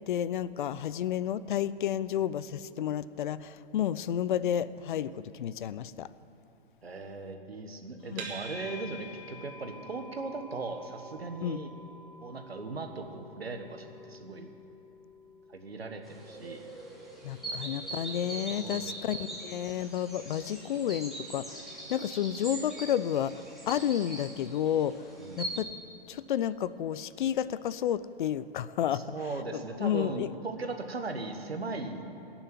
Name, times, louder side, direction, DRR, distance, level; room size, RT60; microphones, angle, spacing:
voice 1, 0.1-6.1 8.1-8.2 11.4-11.6 17.2-23.3 23.7-25.1 25.4-25.7 26.1-29.0 29.8-30.3, left 10 dB, 55° left, 17 dB, 0.5 m, -31 dB
voice 2, 6.8-11.7 12.2-14.5 15.5-16.7 17.4-17.5 18.5-18.9 25.2-25.6 28.9-32.0, right 3 dB, 85° right, 5 dB, 1.5 m, -38 dB
sound 1, 8.2-25.4, equal, 40° right, 2.4 m, -51 dB
sound 2, 16.1-25.6, right 2 dB, ahead, 2.6 m, -42 dB
17.5 x 7.0 x 9.3 m, 2.9 s
figure-of-eight pair, 110°, 30 cm